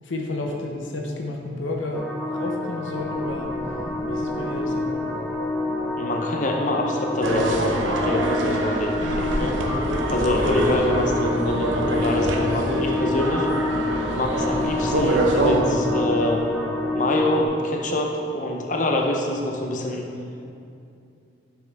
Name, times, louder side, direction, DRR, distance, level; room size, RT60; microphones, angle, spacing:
voice 1, 0.0-2.0 2.3-3.6 4.1-5.0, left 2 dB, 85° left, 1 dB, 0.8 m, -31 dB
sound 1, 1.9-17.5, left 2 dB, 5° left, 0.6 m, -28 dB
voice 2, 6.0-9.5 10.1-13.5 14.1-16.4 16.9-20.0, left 1 dB, 40° left, 1 dB, 0.7 m, -25 dB
sound 2, 7.2-15.6, right 1 dB, 90° right, 0.8 m, -25 dB
sound 3, 9.6-16.4, equal, 60° left, 1.8 m, -36 dB
8.5 x 6.4 x 3.5 m, 2.5 s
head